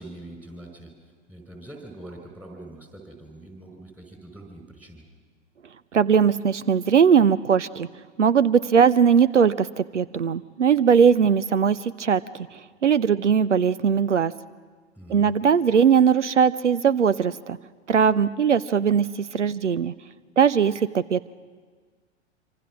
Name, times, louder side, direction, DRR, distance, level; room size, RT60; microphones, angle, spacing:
voice 1, 0.0-5.0 15.0-15.3, right 1 dB, 5° right, 2 dB, 4.9 m, -43 dB
voice 2, 5.9-7.9 8.2-14.3 15.1-17.6 17.9-19.9 20.4-21.3, right 7 dB, 80° right, 17 dB, 0.6 m, -20 dB
26.0 x 25.5 x 6.1 m, 1.5 s
figure-of-eight pair, 95°, 36 cm